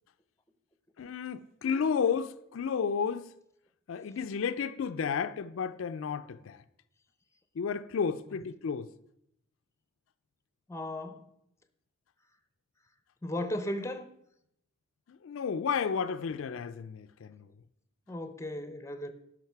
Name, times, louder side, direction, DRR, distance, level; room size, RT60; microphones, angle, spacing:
voice 1, 1.0-3.3 3.9-6.6 7.6-8.9 15.2-17.4, left 6 dB, 75° left, 0.4 m, -32 dB
voice 2, 10.7-11.3 13.2-14.1 18.1-19.1, left 1 dB, 15° left, 0.6 m, -36 dB
10.5 x 6.1 x 4.6 m
head